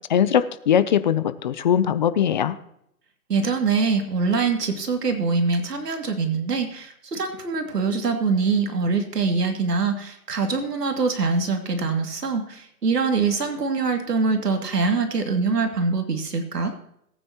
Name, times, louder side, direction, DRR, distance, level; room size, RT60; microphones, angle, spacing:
voice 1, 0.1-2.6, left 9 dB, 30° left, 14 dB, 0.5 m, -20 dB
voice 2, 3.3-16.7, right 4 dB, 85° right, 5 dB, 2.5 m, -24 dB
18.5 x 9.2 x 2.9 m, 0.75 s
hypercardioid pair, 140°, 47 cm